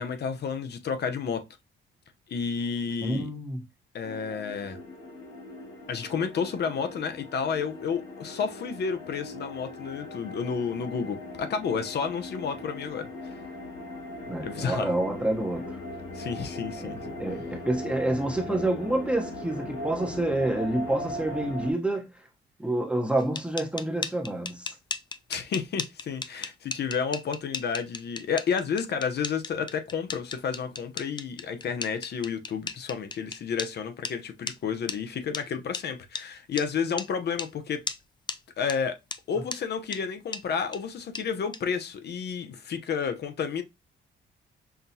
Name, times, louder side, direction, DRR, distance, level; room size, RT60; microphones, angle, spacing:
voice 1, 0.0-1.4 2.3-3.3 3.9-4.8 5.9-13.3 14.4-14.9 16.1-17.2 25.3-37.8 38.6-39.0 39.3-43.6, left 6 dB, 55° left, 0.8 m, -31 dB
voice 2, 3.0-3.6 14.3-15.8 16.8-22.1 22.6-24.8, right 1 dB, 5° right, 0.9 m, -28 dB
sound 1, 4.0-21.7, left 1 dB, 85° left, 1.9 m, -39 dB
sound 2, 23.2-33.7 34.0-34.1 34.5-34.6 34.9-35.0 35.3-35.4 35.7-35.8 36.2-36.3 36.6-36.7 37.0-37.1 37.4-37.5 37.9-38.0 38.3-38.4 38.7-38.8 39.1-39.2 39.5-39.6 39.9-40.0 40.3-40.4 40.7-40.8 41.1-41.2 41.5-41.6, left 4 dB, 25° left, 0.4 m, -34 dB
5.8 x 2.3 x 2.7 m
cardioid pair, 90°, 20 cm